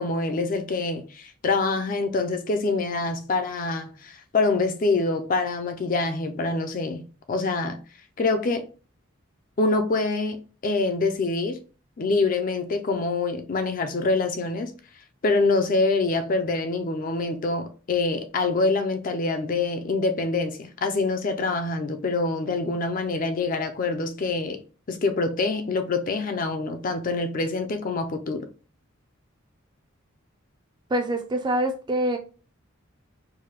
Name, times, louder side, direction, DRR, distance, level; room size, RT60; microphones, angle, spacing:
voice 1, 0.0-7.8 8.2-8.7 9.6-11.6 12.0-14.7 15.2-24.6 24.9-28.5, left 3 dB, 40° left, 0.4 m, -25 dB
voice 2, 30.9-32.2, right 1 dB, 20° right, 0.4 m, -25 dB
4.7 x 2.1 x 3.0 m
head